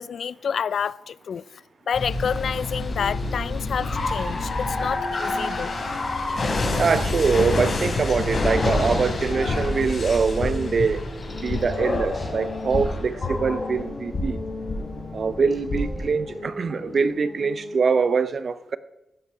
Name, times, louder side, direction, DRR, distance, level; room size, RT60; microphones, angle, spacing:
voice 1, 0.0-5.8, left 7 dB, 75° left, 0.3 m, -29 dB
sound 1, 1.9-16.1, left 2 dB, 50° left, 3.9 m, -28 dB
sound 2, 2.9-17.8, left 3 dB, 90° left, 4.1 m, -38 dB
sound 3, 4.8-17.1, left 1 dB, 15° left, 5.7 m, -46 dB
voice 2, 6.7-11.1 11.4-14.4 15.1-18.8, right 5 dB, 55° right, 0.6 m, -23 dB
16.0 x 8.3 x 4.9 m
wide cardioid pair, 110°, 0 cm